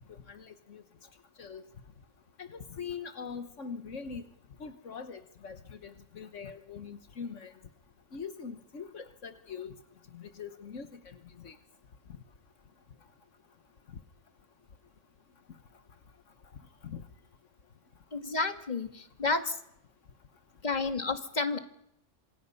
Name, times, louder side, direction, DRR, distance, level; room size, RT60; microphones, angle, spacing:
voice 1, 0.1-0.8 1.4-1.6 2.4-4.2 4.6-7.5 8.1-9.7 10.1-11.5 16.8-17.0, left 6 dB, 75° left, 8 dB, 1.6 m, -42 dB
voice 2, 18.1-19.6 20.6-21.6, left 3 dB, 35° left, 6 dB, 1.9 m, -31 dB
27.0 x 24.5 x 5.5 m, 0.75 s
omnidirectional pair, 1.3 m